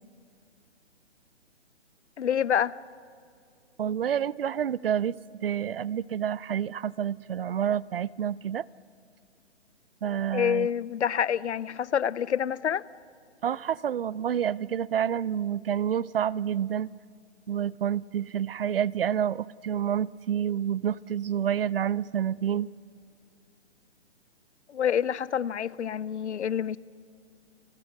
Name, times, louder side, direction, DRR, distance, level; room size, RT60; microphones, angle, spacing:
voice 1, 2.2-2.7 10.3-12.8 24.7-26.8, left 8 dB, 75° left, 21 dB, 0.7 m, -27 dB
voice 2, 3.8-5.1 5.4-8.7 10.0-10.7 13.4-16.9 17.5-22.7, right 9 dB, 55° right, 23 dB, 0.5 m, -28 dB
30.0 x 20.5 x 6.5 m, 2.4 s
hypercardioid pair, 160°, 34 cm